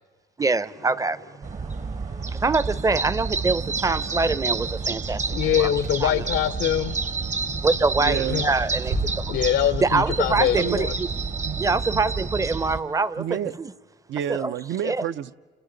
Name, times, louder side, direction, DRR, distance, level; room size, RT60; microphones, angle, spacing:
voice 1, 0.4-1.2 2.3-5.2 5.5-5.7 6.0-6.2 7.6-9.2 9.8-11.1 11.6-13.2 13.6-13.7 14.3-14.5 14.8-15.0, right 3 dB, 15° right, 0.6 m, -24 dB
sound 1, 0.8-13.0, right 5 dB, 50° right, 1.2 m, -48 dB
sound 2, 1.4-12.8, right 4 dB, 35° right, 0.9 m, -29 dB
Car / Engine, 3.4-11.8, right 2 dB, 85° right, 5.9 m, -39 dB
voice 2, 5.3-7.0 8.3-8.5 9.3-10.9, left 11 dB, 75° left, 0.7 m, -23 dB
voice 3, 8.0-8.5 10.5-10.8 11.4-11.6 11.9-12.1 13.2-13.5 14.1-15.3, right 10 dB, 70° right, 0.6 m, -29 dB
30.0 x 29.0 x 3.9 m
cardioid pair, 90°, 20 cm